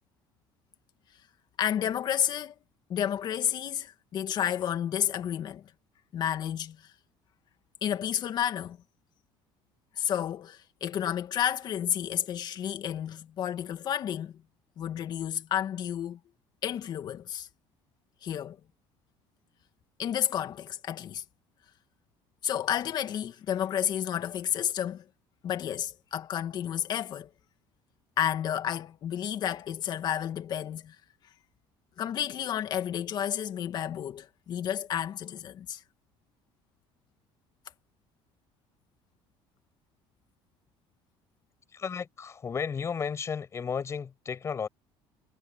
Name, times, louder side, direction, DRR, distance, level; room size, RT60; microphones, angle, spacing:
voice 1, 1.6-2.5 2.9-5.7 6.1-6.8 7.8-8.8 10.0-14.4 14.8-16.2 16.6-17.5 18.2-18.6 20.0-21.2 22.4-25.0 25.4-27.3 28.2-31.0 32.0-35.8, left 10 dB, 45° left, 2.1 m, -31 dB
voice 2, 41.7-44.7, left 6 dB, 25° left, 7.7 m, -33 dB
cardioid pair, 145°, 10 cm